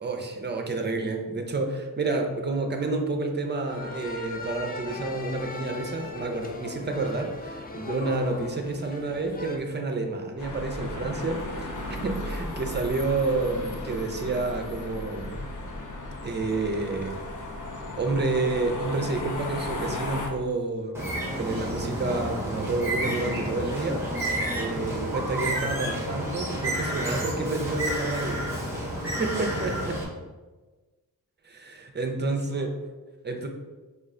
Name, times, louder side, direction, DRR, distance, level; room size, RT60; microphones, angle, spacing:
voice 1, 0.0-11.4 11.7-15.4 16.2-17.2 18.0-21.0 21.4-24.1 24.5-28.4 29.0-30.0 31.4-32.7 33.2-33.5, right 3 dB, 30° right, 3 dB, 0.5 m, -29 dB
sound 1, 3.7-9.6, left 2 dB, 25° left, 0.3 m, -39 dB
sound 2, 10.4-20.3, left 2 dB, 60° left, 0.7 m, -35 dB
Bird, 20.9-30.0, right 1 dB, 5° right, 0.9 m, -30 dB
4.4 x 2.4 x 3.7 m, 1.2 s
wide cardioid pair, 135°, 35 cm